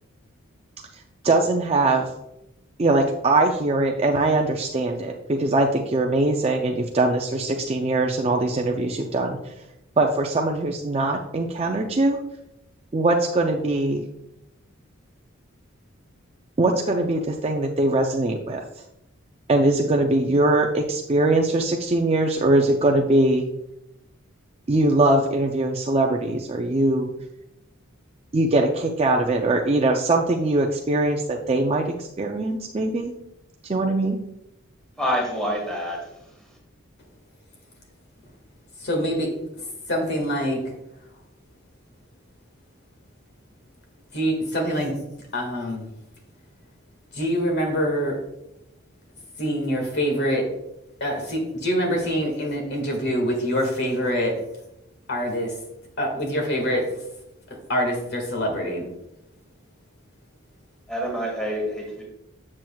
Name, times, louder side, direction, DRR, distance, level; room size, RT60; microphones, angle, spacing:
voice 1, 1.2-2.1 2.8-9.5 10.0-12.2 12.9-14.0 16.6-18.6 19.5-23.4 24.7-27.1 28.3-33.1 33.7-34.2, right 2 dB, 30° right, 2 dB, 0.4 m, -21 dB
voice 2, 35.0-36.3 60.9-62.0, equal, 5° left, -1 dB, 1.5 m, -27 dB
voice 3, 38.8-39.3 39.6-40.6 44.1-44.9 45.3-45.8 47.1-48.2 49.4-50.5 51.0-54.4 55.1-55.5 56.0-56.9 57.5-58.8, equal, 55° left, 2 dB, 1.8 m, -25 dB
7.5 x 7.4 x 2.3 m, 0.85 s
head